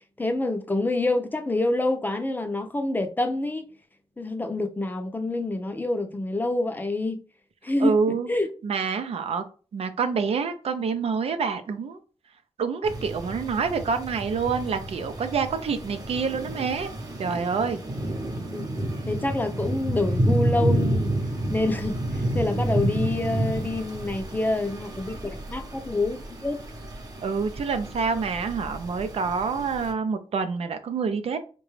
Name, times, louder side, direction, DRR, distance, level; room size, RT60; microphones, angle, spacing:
voice 1, 0.2-3.7 4.2-7.2 7.6-8.5 18.5-18.7 19.1-21.1 21.5-26.6, left 2 dB, 20° left, 0.5 m, -27 dB
voice 2, 7.8-8.3 8.6-9.5 9.7-12.0 12.6-16.9 17.2-17.8 27.2-31.4, right 5 dB, 85° right, 0.5 m, -27 dB
sound 1, 12.8-29.9, right 1 dB, 40° right, 0.8 m, -30 dB
3.8 x 2.2 x 3.1 m
wide cardioid pair, 125°, 10 cm